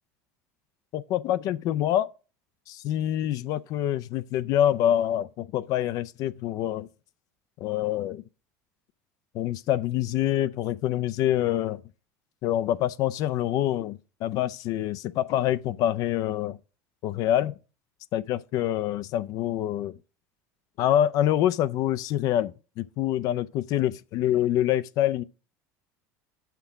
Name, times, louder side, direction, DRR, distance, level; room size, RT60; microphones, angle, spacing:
voice 1, 0.9-2.1 2.7-6.9 7.6-8.2 9.3-11.8 12.4-16.6 17.0-17.5 18.1-19.9 20.8-25.2, left 12 dB, 55° left, 0.4 m, -26 dB
7.0 x 5.8 x 4.8 m
supercardioid pair, 120°, 7 cm